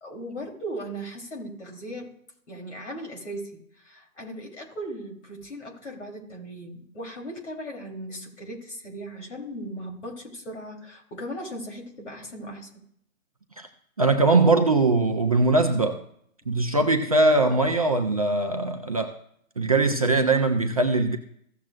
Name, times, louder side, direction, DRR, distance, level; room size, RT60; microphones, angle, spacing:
voice 1, 0.0-2.1 2.5-12.8, right 1 dB, 55° left, 1 dB, 3.4 m, -38 dB
voice 2, 14.0-16.0 16.5-19.1 19.6-21.2, right 2 dB, 25° right, 4 dB, 0.5 m, -21 dB
16.0 x 7.2 x 2.4 m, 0.70 s
figure-of-eight pair, 145°, 42 cm